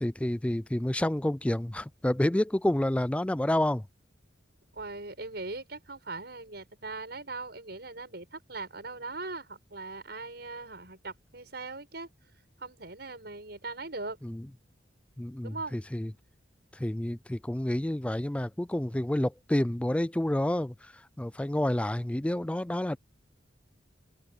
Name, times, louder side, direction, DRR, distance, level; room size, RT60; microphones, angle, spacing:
voice 1, 0.0-3.8 14.2-14.4 15.2-16.1 16.7-20.9 21.2-23.0, left 1 dB, 5° left, 0.3 m, -29 dB
voice 2, 4.7-12.1 12.6-14.2 15.4-15.8, right 3 dB, 60° right, 7.7 m, -40 dB
head